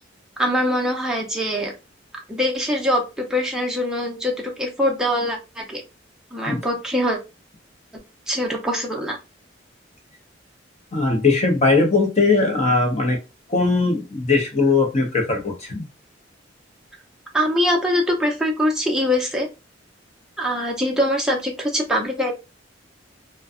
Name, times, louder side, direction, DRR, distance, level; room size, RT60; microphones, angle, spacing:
voice 1, 0.4-1.7 2.3-5.8 6.3-7.2 8.3-9.2 17.3-19.5 20.4-22.3, equal, 5° right, -1 dB, 0.6 m, -23 dB
voice 2, 10.9-13.2 13.5-15.9, left 3 dB, 35° left, 2 dB, 0.7 m, -19 dB
2.5 x 2.2 x 2.4 m, 0.27 s
head